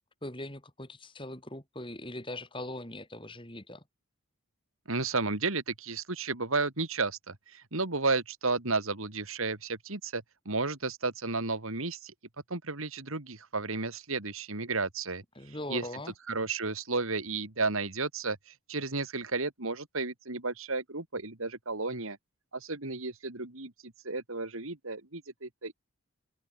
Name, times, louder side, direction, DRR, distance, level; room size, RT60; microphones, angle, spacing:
voice 1, 0.2-3.8 15.3-16.1, left 1 dB, 20° left, 5.2 m, -41 dB
voice 2, 4.9-12.1 12.5-15.2 15.7-15.9 16.3-22.2 22.5-25.7, right 3 dB, 70° right, 2.7 m, -33 dB
head